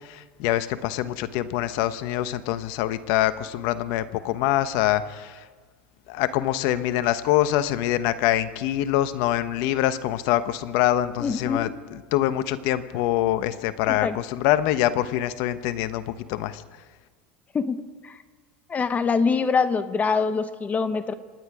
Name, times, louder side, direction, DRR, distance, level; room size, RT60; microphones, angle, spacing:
voice 1, 0.1-5.4 6.1-11.7 12.1-16.6, left 13 dB, 65° left, 12 dB, 1.1 m, -24 dB
voice 2, 11.2-11.8 13.9-14.2 17.5-18.2 18.7-21.1, left 5 dB, 25° left, 11 dB, 1.3 m, -24 dB
27.5 x 10.5 x 5.0 m, 1.4 s
hypercardioid pair, 95°, 6 cm